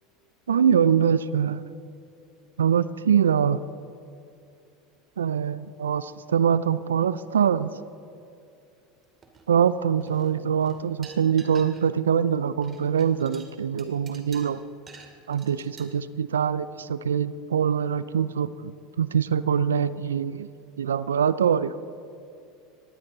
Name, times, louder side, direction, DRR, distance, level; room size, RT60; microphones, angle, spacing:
voice 1, 0.5-1.7 2.6-3.6 5.2-7.7 9.5-14.6 15.3-20.5 20.8-21.8, right 8 dB, 85° right, 17 dB, 0.5 m, -23 dB
sound 1, 9.2-9.7 10.0-12.1 12.3-15.9, right 5 dB, 30° right, 2.3 m, -49 dB
20.0 x 15.0 x 4.0 m, 2.4 s
hypercardioid pair, 85°, 0 cm